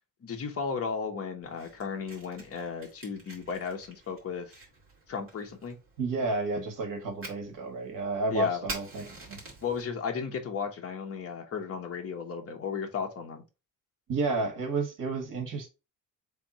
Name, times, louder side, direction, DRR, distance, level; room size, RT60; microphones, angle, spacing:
voice 1, 0.2-4.5 5.1-5.8 8.3-8.7 9.6-13.4, left 6 dB, 45° left, 1.2 m, -34 dB
Fire, 1.4-9.8, right 2 dB, 40° right, 2.2 m, -47 dB
voice 2, 6.0-9.4 14.1-15.7, right 3 dB, 70° right, 1.9 m, -31 dB
3.6 x 3.5 x 4.2 m
cardioid pair, 150°, 34 cm